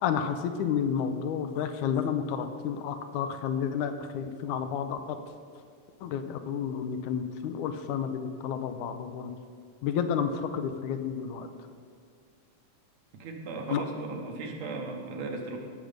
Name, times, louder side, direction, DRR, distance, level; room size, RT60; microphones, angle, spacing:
voice 1, 0.0-5.2 6.0-9.3 9.8-11.5 13.7-13.8, left 7 dB, 80° left, 8 dB, 2.1 m, -31 dB
voice 2, 13.1-15.6, right 3 dB, 65° right, 2 dB, 2.3 m, -37 dB
16.5 x 6.6 x 5.1 m, 2.2 s
omnidirectional pair, 3.5 m